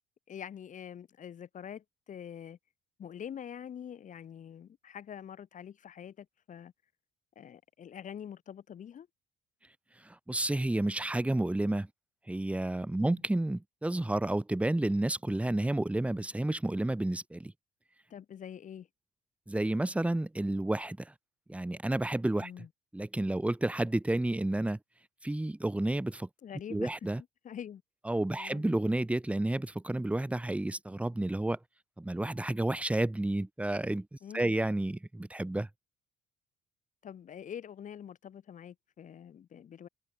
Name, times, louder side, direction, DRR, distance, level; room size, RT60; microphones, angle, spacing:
voice 1, 0.3-2.6 3.0-6.7 7.3-9.1 13.0-13.2 18.1-18.9 22.4-22.7 26.4-27.1 27.4-27.8 28.3-28.6 34.2-34.5 37.0-39.9, left 9 dB, 50° left, 4.8 m, -45 dB
voice 2, 10.1-11.9 12.3-17.5 19.5-21.1 21.5-22.5 22.9-24.8 25.2-26.3 26.7-27.2 28.1-31.6 32.0-34.1 34.3-35.7, right 1 dB, 5° right, 1.9 m, -31 dB
cardioid pair, 110°, 17 cm